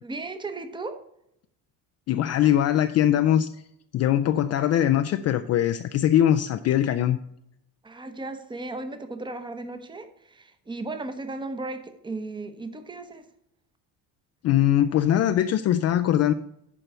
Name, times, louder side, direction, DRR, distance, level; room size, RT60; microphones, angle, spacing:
voice 1, 0.0-1.0 7.8-13.2, right 2 dB, 10° right, 0.8 m, -35 dB
voice 2, 2.1-3.5 3.9-7.2 14.4-16.3, left 11 dB, 40° left, 0.4 m, -21 dB
11.0 x 4.6 x 6.7 m
cardioid pair, 170°, 40 cm